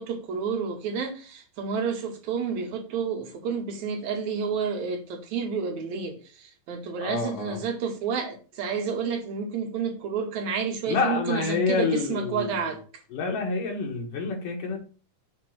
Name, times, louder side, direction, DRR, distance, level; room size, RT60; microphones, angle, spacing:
voice 1, 0.0-12.8, right 6 dB, 70° right, 2.2 m, -30 dB
voice 2, 7.0-7.6 10.9-12.7 13.1-14.8, left 4 dB, 85° left, 3.2 m, -28 dB
6.9 x 3.0 x 5.8 m
omnidirectional pair, 3.6 m